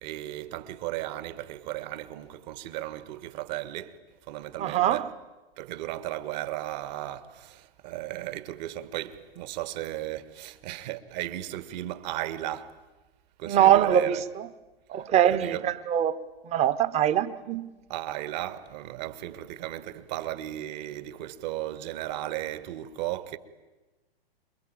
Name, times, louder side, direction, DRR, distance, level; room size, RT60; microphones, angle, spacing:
voice 1, 0.0-4.0 4.3-5.1 5.6-12.7 13.4-14.2 14.9-15.7 17.9-23.4, right 14 dB, 45° right, 1.8 m, -35 dB
voice 2, 4.6-5.1 13.5-14.2 14.9-16.1 16.5-17.7, right 10 dB, 20° right, 1.1 m, -23 dB
28.0 x 22.5 x 8.8 m
hypercardioid pair, 130°, 31 cm